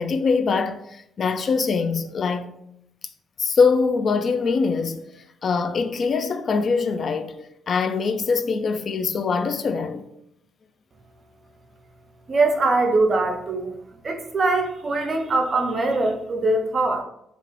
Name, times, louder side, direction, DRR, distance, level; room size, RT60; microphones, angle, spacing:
voice 1, 0.0-2.5 3.4-5.0 5.4-7.4 7.7-10.0, left 5 dB, 50° left, 0.3 m, -23 dB
voice 2, 12.3-13.8 14.0-17.0, right 2 dB, 40° right, 0.6 m, -22 dB
3.2 x 2.5 x 3.5 m
cardioid pair, 90°, 0 cm